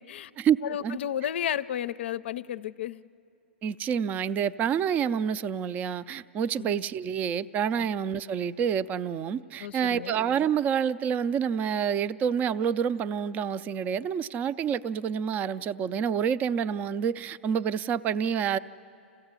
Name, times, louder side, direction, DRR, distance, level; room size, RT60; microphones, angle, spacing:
voice 1, 0.0-0.3 0.6-3.1 6.6-6.8 7.8-7.9 9.6-10.1, left 10 dB, 70° left, 16 dB, 0.5 m, -33 dB
voice 2, 3.6-18.6, right 8 dB, 25° right, 16 dB, 0.4 m, -28 dB
27.5 x 16.0 x 8.2 m, 2.8 s
hypercardioid pair, 130°, 6 cm